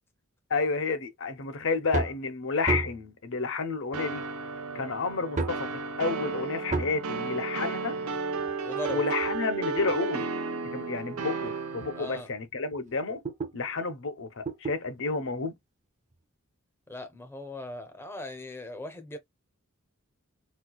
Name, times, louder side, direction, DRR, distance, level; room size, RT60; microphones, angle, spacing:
voice 1, 0.5-4.2 4.7-5.7 6.0-8.0 8.9-10.3 10.7-13.2 13.5-15.5, left 4 dB, 60° left, 0.8 m, -30 dB
sound 1, 1.9-2.2 2.7-3.1 4.1-4.2 5.4-5.7 6.7-7.0 8.4-10.0 10.7-10.8 11.4-11.5 11.8-11.9 12.3-13.6 14.5-14.8 16.1-16.2, right 3 dB, 35° right, 0.6 m, -32 dB
sound 2, 3.9-12.2, right 4 dB, 85° right, 0.7 m, -33 dB
voice 2, 8.6-9.0 11.9-12.3 16.9-19.2, left 2 dB, 10° left, 0.6 m, -39 dB
4.3 x 2.3 x 2.3 m
head